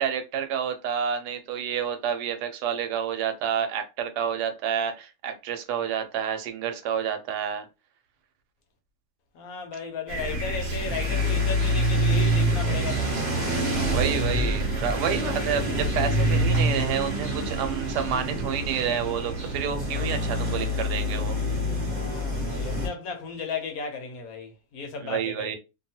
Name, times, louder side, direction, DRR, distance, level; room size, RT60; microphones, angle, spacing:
voice 1, 0.0-7.7 13.1-13.2 13.8-21.4 25.0-25.6, right 8 dB, 80° right, 1.2 m, -29 dB
voice 2, 9.3-13.4 21.8-25.6, left 5 dB, 65° left, 1.0 m, -35 dB
sound 1, 10.1-22.9, equal, 40° right, 0.7 m, -26 dB
2.8 x 2.3 x 2.7 m
omnidirectional pair, 1.8 m